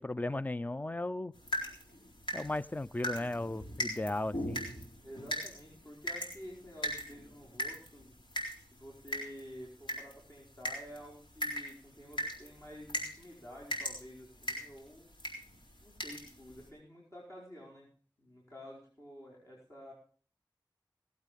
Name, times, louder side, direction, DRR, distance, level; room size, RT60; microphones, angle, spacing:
voice 1, 0.0-1.3 2.3-4.6, left 2 dB, 20° left, 18 dB, 0.5 m, -36 dB
sound 1, 1.3-16.7, equal, 90° left, 4.1 m, -41 dB
voice 2, 4.9-8.2 8.7-15.1 15.8-17.9 18.2-19.9, equal, 40° left, -3 dB, 5.0 m, -50 dB
18.5 x 8.3 x 5.2 m, 0.42 s
cardioid pair, 40°, 8 cm